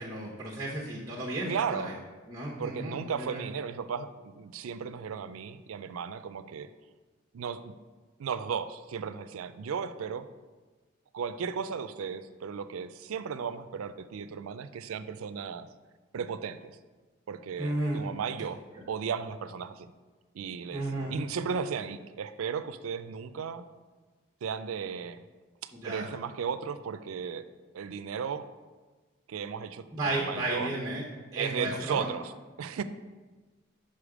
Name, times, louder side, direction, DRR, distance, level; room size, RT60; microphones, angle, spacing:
voice 1, 0.0-1.9 2.3-3.4 17.6-18.1 20.7-21.1 25.8-26.1 29.9-31.0 31.3-32.1, right 1 dB, 15° right, -5 dB, 0.8 m, -33 dB
voice 2, 1.5-1.9 2.6-6.7 7.3-7.7 8.2-10.3 11.1-15.7 16.1-16.7 17.3-18.6 18.9-19.9 20.3-23.6 24.4-25.2 25.6-27.4 27.7-28.5 29.3-30.7 31.4-32.3 32.6-32.8, right 6 dB, 80° right, 12 dB, 0.4 m, -35 dB
5.6 x 4.9 x 4.9 m, 1.3 s
head